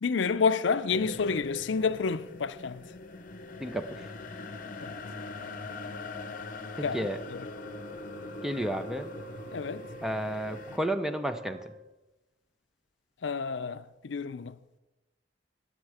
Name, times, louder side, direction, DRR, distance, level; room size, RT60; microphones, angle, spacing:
voice 1, 0.0-2.8 4.8-5.0 6.8-7.0 7.3-7.4 9.5-9.9 13.2-14.6, left 5 dB, 80° left, 0.5 m, -29 dB
Ghost Voices, 0.9-10.8, left 3 dB, 50° left, 0.9 m, -42 dB
voice 2, 3.6-4.1 6.8-7.2 8.4-9.1 10.0-11.7, right 1 dB, 5° right, 0.6 m, -32 dB
Wind instrument woodwind instrument, 7.5-11.9, right 2 dB, 85° right, 3.6 m, -48 dB
21.5 x 7.4 x 4.9 m
head